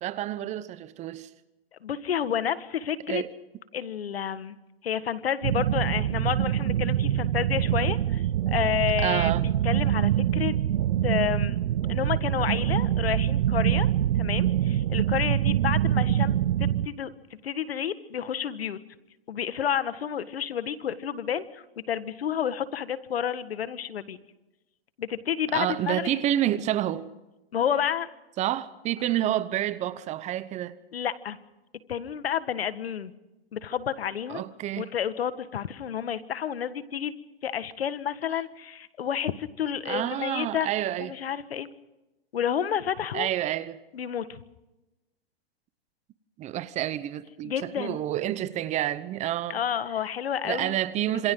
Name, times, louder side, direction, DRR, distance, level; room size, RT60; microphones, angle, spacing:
voice 1, 0.0-1.3 3.1-3.3 9.0-9.4 25.5-27.1 28.4-30.8 34.3-34.9 39.8-41.1 43.1-43.8 46.4-49.6 50.4-51.3, right 13 dB, 25° right, 0.9 m, -29 dB
voice 2, 1.8-3.2 3.7-4.6 4.8-10.5 11.0-11.6 11.9-13.9 14.2-16.3 16.6-17.1 17.4-18.8 19.3-24.2 25.0-26.5 27.5-28.1 30.9-31.4 31.9-33.1 33.5-34.4 34.8-37.1 37.4-40.7 41.0-41.7 42.3-43.3 43.9-44.4 47.4-48.0 49.5-50.8, left 9 dB, 80° left, 1.8 m, -30 dB
sound 1, 5.4-16.9, right 11 dB, 75° right, 0.9 m, -25 dB
28.0 x 27.0 x 3.9 m
hypercardioid pair, 135°, 30 cm